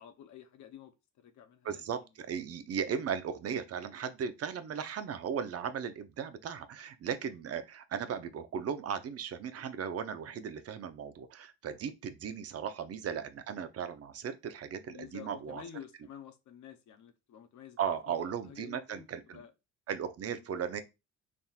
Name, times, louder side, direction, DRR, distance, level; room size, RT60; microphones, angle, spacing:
voice 1, 0.0-2.1 12.6-12.7 14.8-19.1 19.3-19.5 20.6-20.7, left 9 dB, 70° left, 0.7 m, -50 dB
voice 2, 1.6-15.6 17.8-19.4 19.9-20.8, right 7 dB, 55° right, 0.7 m, -37 dB
4.1 x 3.5 x 2.4 m
cardioid pair, 90°, 30 cm